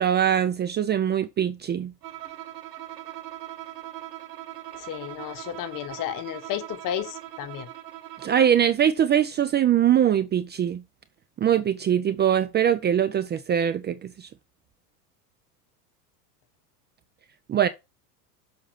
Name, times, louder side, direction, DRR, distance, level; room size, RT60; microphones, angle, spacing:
voice 1, 0.0-1.9 8.2-10.8 11.4-14.3 17.5-17.7, right 9 dB, 20° right, 0.6 m, -22 dB
Bowed string instrument, 2.0-8.7, right 14 dB, 75° right, 1.1 m, -40 dB
voice 2, 4.7-7.7, left 11 dB, 40° left, 1.4 m, -33 dB
7.2 x 5.5 x 6.3 m
hypercardioid pair, 90°, 48 cm